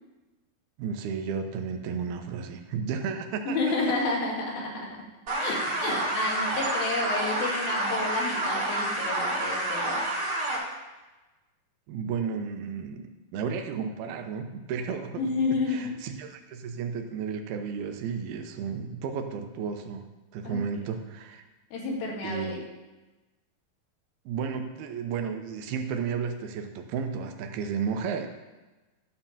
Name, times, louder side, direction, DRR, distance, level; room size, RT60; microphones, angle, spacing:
voice 1, 0.8-3.6 11.9-15.3 15.7-20.1 20.3-21.4 22.2-22.7 24.3-28.3, right 6 dB, 85° right, 6 dB, 2.7 m, -33 dB
voice 2, 3.5-4.9 5.4-10.0 15.2-15.9 20.4-20.6 21.7-22.6, left 3 dB, 75° left, -2 dB, 3.8 m, -30 dB
sound 1, 5.3-10.6, right 2 dB, 35° right, 1.9 m, -29 dB
12.5 x 4.6 x 7.3 m, 1.1 s
omnidirectional pair, 4.4 m